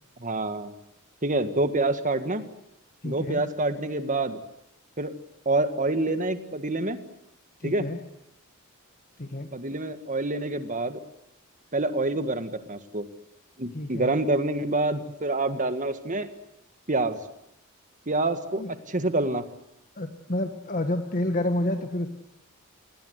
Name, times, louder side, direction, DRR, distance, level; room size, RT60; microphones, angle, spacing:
voice 1, 0.2-0.7 1.2-2.4 3.0-4.4 5.0-5.1 5.5-7.0 7.6-7.9 9.5-11.0 11.7-13.1 13.6-16.3 16.9-17.2 18.1-18.6 18.9-19.4, right 2 dB, 35° right, 9 dB, 1.8 m, -27 dB
voice 2, 3.0-3.4 7.6-8.0 9.2-9.5 13.7-14.1 18.6-18.7 19.9-22.1, left 1 dB, 40° left, 6 dB, 1.6 m, -29 dB
28.0 x 19.5 x 8.2 m, 0.86 s
head